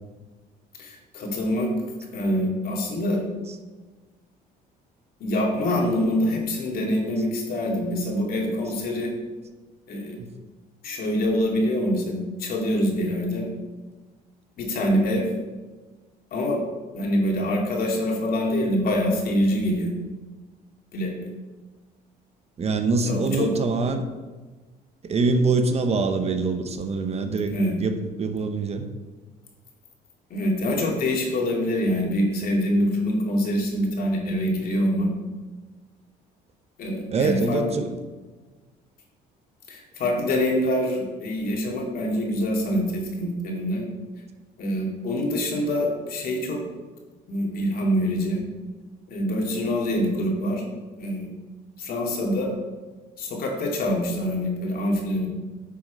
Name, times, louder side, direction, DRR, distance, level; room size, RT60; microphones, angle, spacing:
voice 1, 0.8-1.7 2.1-3.2 5.2-9.1 9.9-10.2 10.8-13.5 14.6-15.3 16.3-16.6 16.9-19.9 20.9-21.1 23.1-23.5 27.5-27.8 30.3-35.1 36.8-37.6 39.7-43.9 44.6-46.6 47.3-48.4 49.1-50.6 51.0-51.3 51.8-52.5 53.2-55.3, left 1 dB, 60° left, -1 dB, 2.6 m, -25 dB
voice 2, 22.6-24.1 25.0-28.8 37.1-37.9, right 3 dB, 40° right, 7 dB, 0.9 m, -24 dB
9.8 x 6.1 x 5.3 m, 1.3 s
cardioid pair, 110°, 17 cm